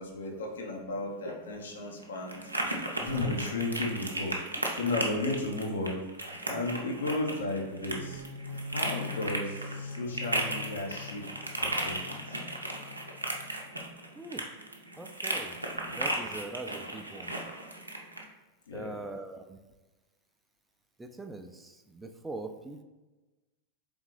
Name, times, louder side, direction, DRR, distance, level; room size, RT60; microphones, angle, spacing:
voice 1, 0.0-2.4 3.0-8.2 8.7-11.2 11.6-12.4 15.7-15.9 18.7-19.0, left 2 dB, 65° left, 1 dB, 0.7 m, -34 dB
sound 1, 1.1-18.2, right 1 dB, 85° right, 0.5 m, -36 dB
sound 2, 7.8-13.7, left 4 dB, 35° left, 1.0 m, -43 dB
voice 2, 14.1-14.6 15.0-15.6 15.9-17.4 18.7-19.6 21.0-22.8, right 2 dB, 10° right, 6 dB, 0.4 m, -42 dB
3.6 x 3.5 x 3.1 m, 1.2 s
figure-of-eight pair, 90°, 0 cm